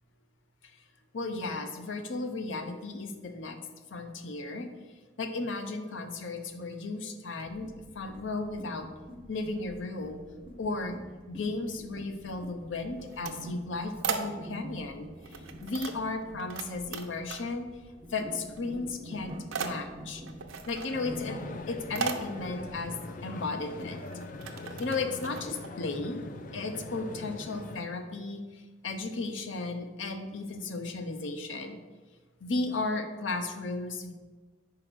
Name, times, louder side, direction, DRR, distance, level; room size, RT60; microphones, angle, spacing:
voice 1, 1.1-3.6 3.9-8.9 9.3-10.2 10.6-11.0 11.3-17.7 18.1-20.2 20.7-21.4 21.7-23.0 23.2-24.1 24.8-26.2 26.5-31.8 32.4-34.1, left 3 dB, 75° left, 6 dB, 0.7 m, -35 dB
sound 1, 7.5-23.0, equal, 25° right, 0.6 m, -47 dB
sound 2, 12.9-14.8 15.2-16.7 16.9-17.8 18.0-18.7 19.0-25.7, right 5 dB, 90° right, 0.7 m, -38 dB
sound 3, 20.9-27.8, left 2 dB, 40° left, 0.4 m, -42 dB
4.9 x 4.8 x 6.2 m, 1.3 s
head